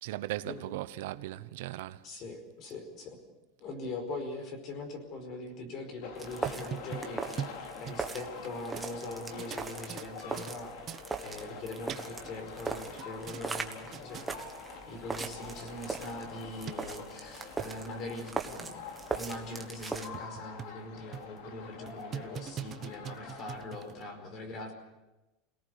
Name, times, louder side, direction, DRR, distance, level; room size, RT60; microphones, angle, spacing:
voice 1, 0.0-2.0, right 15 dB, 75° right, 0.9 m, -38 dB
voice 2, 2.0-3.2 3.6-7.2 7.8-10.8 11.2-14.3 14.9-18.8 19.1-24.7, left 2 dB, 40° left, 4.9 m, -42 dB
sound 1, 6.0-23.7, left 5 dB, 65° left, 3.2 m, -46 dB
sound 2, 6.2-20.1, right 4 dB, 10° right, 1.5 m, -40 dB
sound 3, 6.4-8.5 8.8-8.9 9.3-10.6 10.9-11.0 11.6-12.3 12.6-13.6 13.9-14.3 14.9-15.0 15.2-15.3 15.7-15.8 16.0-16.1 16.7-16.8 17.4-17.7 18.2-18.3 18.6-18.7 19.2-19.3 19.6-19.7 20.1-20.8 21.1-21.4 21.9-24.0, right 9 dB, 30° right, 0.8 m, -42 dB
27.5 x 18.5 x 6.7 m
supercardioid pair, 160°, 0 cm